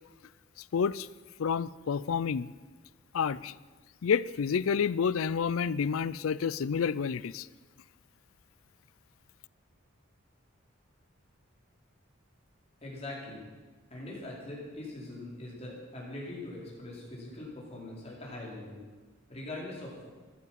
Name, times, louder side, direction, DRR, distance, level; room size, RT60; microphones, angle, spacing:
voice 1, 0.7-1.1 1.4-2.5 3.1-3.5 4.0-7.5, left 6 dB, 90° left, 19 dB, 0.4 m, -29 dB
voice 2, 12.8-13.4 13.9-18.8 19.3-20.1, left 2 dB, 30° left, -4 dB, 4.6 m, -42 dB
15.0 x 11.0 x 7.5 m, 1.4 s
head